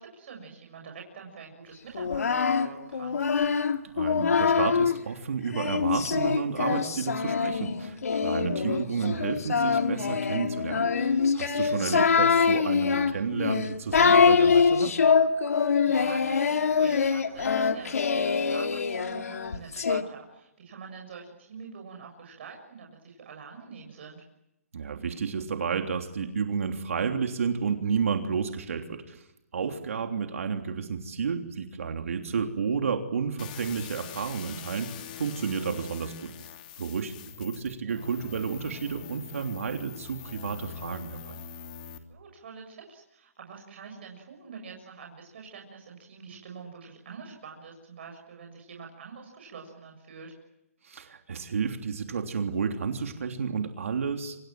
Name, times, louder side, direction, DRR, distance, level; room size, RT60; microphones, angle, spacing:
voice 1, 0.0-3.2 8.6-8.8 11.7-12.0 15.6-24.2 37.9-38.1 42.1-50.3, right 5 dB, 50° right, 1 dB, 7.1 m, -45 dB
Singing, 1.9-5.0 5.5-20.0, left 6 dB, 80° left, 2.3 m, -24 dB
voice 2, 4.0-15.0 24.7-29.2 29.5-36.3 36.8-41.3 50.8-54.4, right 6 dB, 65° right, 5 dB, 3.3 m, -31 dB
sound 1, 33.4-42.0, left 8 dB, 35° left, 2.9 m, -43 dB
28.5 x 26.5 x 7.7 m, 0.84 s
hypercardioid pair, 165°, 8 cm